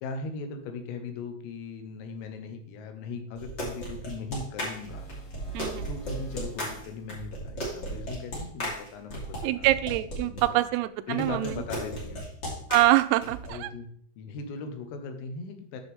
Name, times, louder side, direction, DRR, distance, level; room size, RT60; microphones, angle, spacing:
voice 1, 0.0-5.1 5.9-9.7 10.2-10.7 11.1-12.2 13.5-13.9 14.2-15.8, left 4 dB, 85° left, 6 dB, 3.7 m, -38 dB
sound 1, 3.4-10.4 11.2-13.5, equal, 35° left, 1.9 m, -35 dB
sound 2, 4.7-7.1, right 5 dB, 50° left, 1.4 m, -42 dB
voice 2, 5.5-5.9 9.4-11.6 12.7-13.7, right 17 dB, 85° right, 12 dB, 3.3 m, -25 dB
9.2 x 6.7 x 3.5 m, 0.62 s
omnidirectional pair, 6.0 m